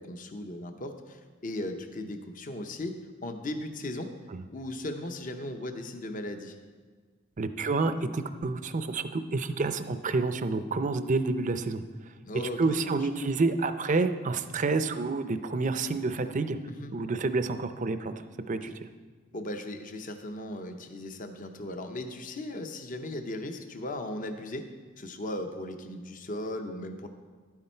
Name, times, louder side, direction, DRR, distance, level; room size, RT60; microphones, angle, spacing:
voice 1, 0.0-4.1 4.5-6.6 12.2-12.6 12.8-13.0 16.7-16.9 19.3-24.7 25.0-27.1, left 1 dB, 40° left, 6 dB, 0.8 m, -37 dB
voice 2, 7.4-11.8 12.6-16.6 16.9-18.1 18.5-18.8, right 3 dB, 40° right, 10 dB, 0.5 m, -28 dB
12.0 x 9.6 x 4.4 m, 1.5 s
head